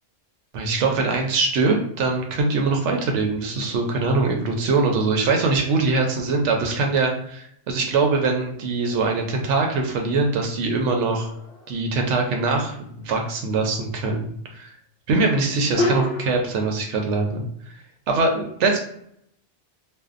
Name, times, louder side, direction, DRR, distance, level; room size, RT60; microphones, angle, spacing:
voice 1, 0.5-11.3 11.7-14.7 15.1-17.4 18.1-18.8, right 3 dB, 80° right, 3 dB, 0.9 m, -22 dB
sound 1, 11.2-11.8 15.8-16.7, left 2 dB, 65° left, 0.7 m, -27 dB
2.5 x 2.2 x 2.4 m, 0.70 s
omnidirectional pair, 1.2 m